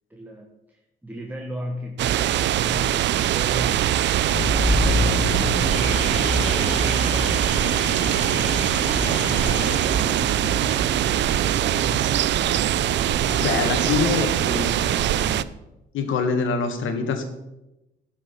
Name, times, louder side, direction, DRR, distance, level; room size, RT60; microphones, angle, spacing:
voice 1, 0.1-4.3 4.6-10.8 11.3-15.6, equal, 10° right, 1 dB, 1.4 m, -37 dB
sound 1, 2.0-15.4, right 12 dB, 65° right, 0.4 m, -22 dB
Car / Alarm, 4.3-15.4, left 2 dB, 30° left, 2.8 m, -29 dB
voice 2, 13.4-14.7 15.9-17.2, left 5 dB, 80° left, 7 dB, 1.6 m, -24 dB
12.0 x 6.0 x 5.8 m, 0.95 s
cardioid pair, 90°, 20 cm